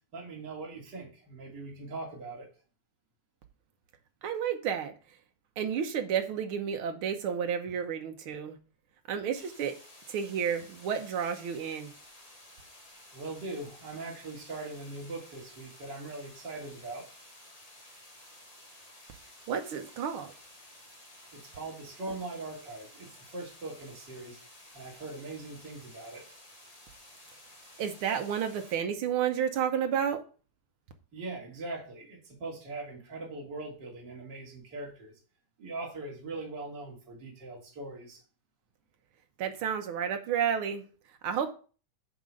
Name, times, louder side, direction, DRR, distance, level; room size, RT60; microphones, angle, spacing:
voice 1, 0.1-2.5 13.1-17.1 21.3-24.4 24.7-26.4 31.1-35.1 35.6-38.2, right 2 dB, 35° right, -2 dB, 3.0 m, -41 dB
voice 2, 4.2-4.9 5.6-8.6 9.1-9.8 10.1-11.9 19.5-20.3 27.8-30.2 39.4-40.8 41.2-41.5, right 8 dB, 75° right, 5 dB, 1.2 m, -31 dB
sound 1, 9.3-28.8, left 1 dB, 15° left, 1.8 m, -54 dB
9.1 x 3.8 x 6.4 m, 0.37 s
omnidirectional pair, 3.5 m